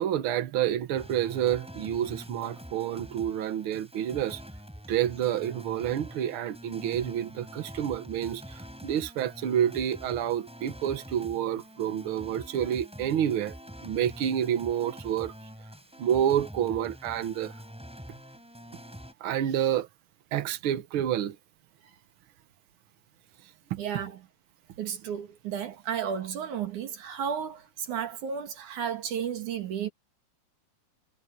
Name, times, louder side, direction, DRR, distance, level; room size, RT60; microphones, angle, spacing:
voice 1, 0.0-4.4 4.9-13.6 13.8-15.3 16.0-17.5 19.2-19.9 20.3-21.4 23.7-23.8, right 10 dB, 85° right, 1.1 m, -29 dB
sound 1, 1.0-19.1, equal, ahead, 6.9 m, -45 dB
voice 2, 23.8-24.2 24.8-29.9, right 8 dB, 60° right, 3.3 m, -33 dB
omnidirectional pair, 4.0 m